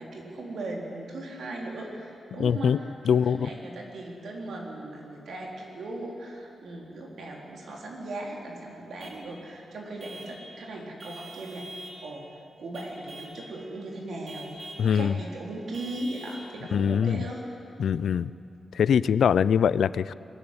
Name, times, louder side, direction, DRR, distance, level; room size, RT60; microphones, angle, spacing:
voice 1, 0.0-2.8 3.0-17.5, right 2 dB, 75° right, -1 dB, 3.9 m, -38 dB
voice 2, 2.3-2.8 3.0-3.5 14.8-15.2 16.7-17.3 17.8-18.3 18.7-20.1, left 7 dB, 80° left, 18 dB, 0.4 m, -23 dB
Vehicle horn car horn honking / Truck, 9.0-9.3 10.0-10.4 11.0-12.0 12.7-13.4 14.2-14.9 15.7-16.5, right 1 dB, 40° right, 4.4 m, -44 dB
21.0 x 14.0 x 9.7 m, 2.7 s
wide cardioid pair, 140°, 0 cm